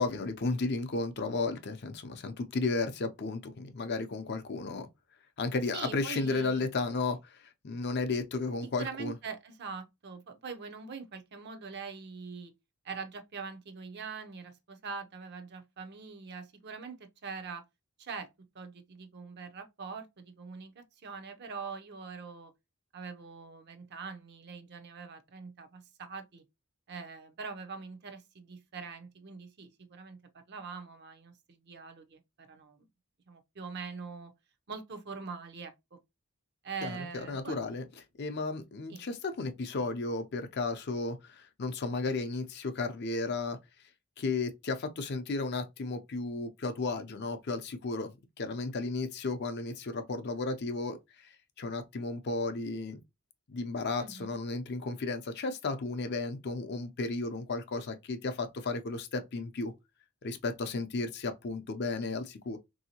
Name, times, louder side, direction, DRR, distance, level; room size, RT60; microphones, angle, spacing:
voice 1, 0.0-4.9 5.4-9.1 36.8-37.8 38.2-43.6 44.2-48.1 48.4-51.3 51.6-53.0 53.5-59.7 60.2-62.6, left 3 dB, 50° left, 0.5 m, -34 dB
voice 2, 5.7-6.7 8.6-12.5 12.8-17.6 18.0-18.3 18.5-22.5 22.9-26.4 26.9-30.2 30.5-32.2 32.5-32.9 33.3-34.3 34.7-36.0 36.6-37.6 38.9-39.0 54.0-54.3, right 5 dB, 50° right, 0.6 m, -43 dB
3.5 x 2.7 x 2.8 m
head